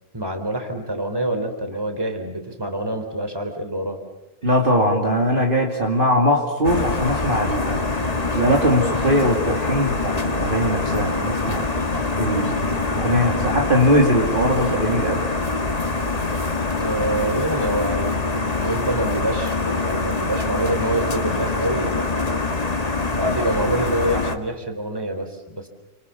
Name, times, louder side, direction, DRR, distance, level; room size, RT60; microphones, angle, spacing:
voice 1, 0.1-4.0 16.7-22.4 23.1-25.7, right 1 dB, 15° right, 6 dB, 3.5 m, -26 dB
voice 2, 4.4-7.9 8.3-11.7 12.2-15.2, equal, 35° right, 0 dB, 2.8 m, -20 dB
sound 1, 6.6-24.4, left 3 dB, 25° left, 1.8 m, -24 dB
30.0 x 26.5 x 7.0 m, 0.95 s
omnidirectional pair, 1.6 m